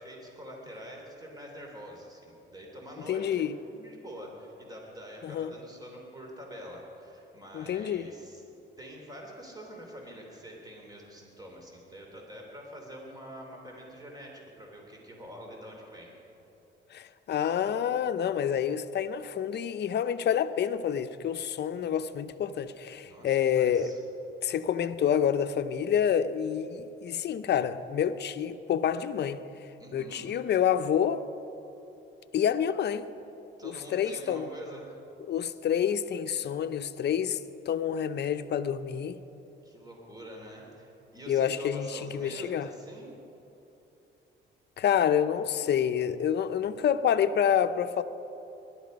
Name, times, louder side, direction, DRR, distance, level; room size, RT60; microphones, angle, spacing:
voice 1, 0.0-8.4 8.8-16.1 23.0-24.0 29.8-30.3 33.6-34.9 39.6-43.1, equal, 20° right, 3.1 m, -46 dB
voice 2, 3.1-3.5 5.2-5.5 7.5-8.1 16.9-23.9 24.4-29.4 29.9-31.2 32.3-33.1 33.6-34.5 35.3-37.4 37.7-39.2 41.3-42.7 44.8-48.0, left 9 dB, 60° left, 0.7 m, -28 dB
20.5 x 12.0 x 5.3 m
cardioid pair, 90°, 20 cm